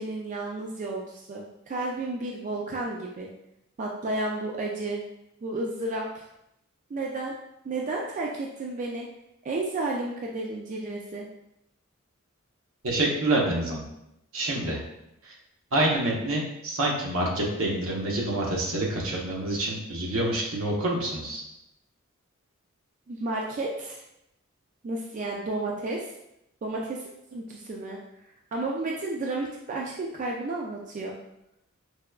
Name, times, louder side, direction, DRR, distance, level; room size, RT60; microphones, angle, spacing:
voice 1, 0.0-3.3 3.8-5.0 5.4-6.2 6.9-7.3 7.6-9.1 9.4-11.3 23.1-24.0 24.8-26.1 26.6-27.0 27.3-28.0 28.5-31.2, right 2 dB, 40° right, -1 dB, 0.3 m, -32 dB
voice 2, 12.8-13.8 14.3-14.8 15.2-15.3 15.7-21.4, right 1 dB, 75° right, -2 dB, 0.8 m, -27 dB
4.6 x 2.2 x 2.3 m, 0.83 s
head